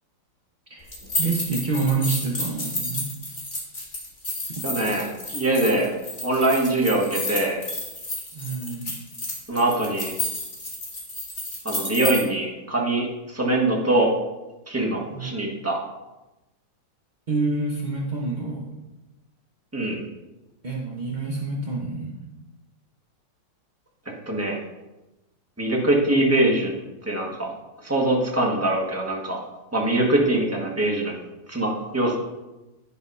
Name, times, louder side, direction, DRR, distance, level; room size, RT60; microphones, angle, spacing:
voice 1, 0.7-3.1 4.5-4.7 8.3-8.9 15.1-15.4 17.3-18.8 20.6-22.2, right 3 dB, 50° right, -2 dB, 0.5 m, -28 dB
sound 1, 0.9-12.2, left 1 dB, 25° left, 2.0 m, -31 dB
voice 2, 4.6-5.9 6.2-7.6 9.5-10.1 11.6-14.1 14.7-15.8 19.7-20.0 24.3-24.6 25.6-26.7 27.0-27.5 27.8-29.4 29.7-31.1 31.5-32.2, right 2 dB, 10° right, -2 dB, 1.2 m, -23 dB
10.0 x 4.0 x 5.4 m, 1.0 s
omnidirectional pair, 2.2 m